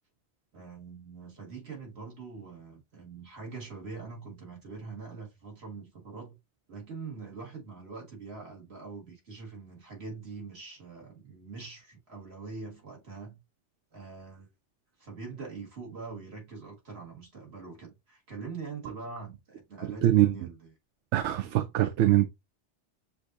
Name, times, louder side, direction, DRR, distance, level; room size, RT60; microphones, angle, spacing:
voice 1, 0.5-6.4 6.7-13.4 13.9-14.5 15.0-20.7, right 4 dB, 65° right, 2.0 m, -43 dB
voice 2, 20.0-20.5 21.1-22.3, right 13 dB, 85° right, 0.9 m, -23 dB
6.8 x 2.6 x 2.5 m
omnidirectional pair, 1.2 m